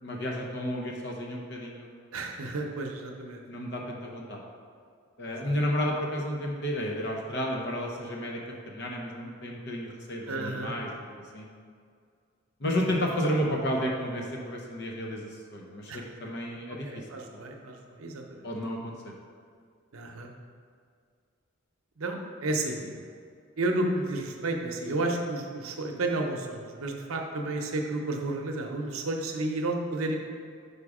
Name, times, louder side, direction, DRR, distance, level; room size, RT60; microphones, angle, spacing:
voice 1, 0.0-1.9 3.5-4.4 5.2-11.5 12.6-17.0 17.3-17.4 18.4-19.1, equal, 55° left, 0 dB, 0.8 m, -32 dB
voice 2, 2.1-3.4 5.3-5.5 10.3-10.7 15.9-16.1 16.9-18.5 19.9-20.3 22.0-23.0 23.6-30.2, right 2 dB, 85° right, 2 dB, 0.8 m, -32 dB
5.5 x 5.1 x 4.9 m, 2.2 s
head